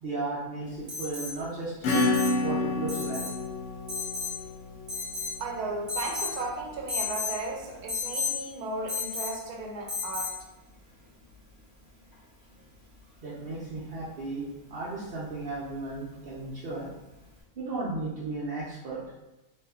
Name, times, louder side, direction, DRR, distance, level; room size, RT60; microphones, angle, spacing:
voice 1, 0.0-1.7 2.4-3.3 13.2-14.4 14.7-16.9 17.6-19.0, right 3 dB, 65° right, -7 dB, 0.6 m, -35 dB
Alarm, 0.9-1.3 1.9-2.4 2.9-3.3 3.9-4.4 4.9-5.4 5.9-6.4 6.9-7.3 7.9-8.4 8.9-9.4 9.9-10.4 12.1-12.2, left 5 dB, 30° right, 0.8 m, -33 dB
Acoustic guitar / Strum, 1.8-6.1, left 2 dB, 80° left, 1.0 m, -30 dB
voice 2, 5.4-10.4, right 2 dB, 85° right, 1 dB, 1.1 m, -35 dB
2.7 x 2.3 x 2.2 m, 1.0 s
omnidirectional pair, 1.6 m